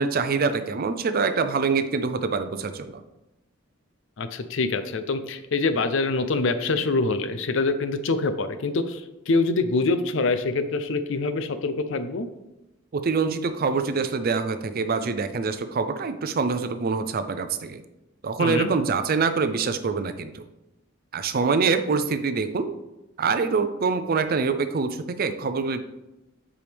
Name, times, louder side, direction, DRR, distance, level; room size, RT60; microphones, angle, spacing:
voice 1, 0.0-3.0 12.9-17.8 18.2-20.5 21.1-22.7 23.2-25.8, right 4 dB, 50° right, 10 dB, 0.5 m, -25 dB
voice 2, 4.2-9.0 9.3-12.3 18.4-18.7, left 3 dB, 70° left, 10 dB, 0.6 m, -25 dB
7.7 x 4.9 x 3.5 m, 0.95 s
head